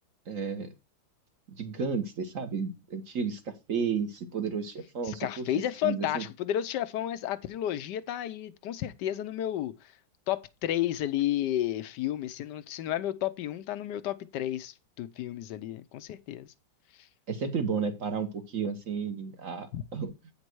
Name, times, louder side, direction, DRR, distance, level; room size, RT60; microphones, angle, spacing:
voice 1, 0.3-0.7 1.5-6.3 17.3-20.1, right 6 dB, 45° right, 1.6 m, -33 dB
voice 2, 5.1-9.7 10.3-16.5 19.7-19.8, left 12 dB, 70° left, 1.3 m, -32 dB
9.0 x 5.4 x 4.6 m
omnidirectional pair, 2.0 m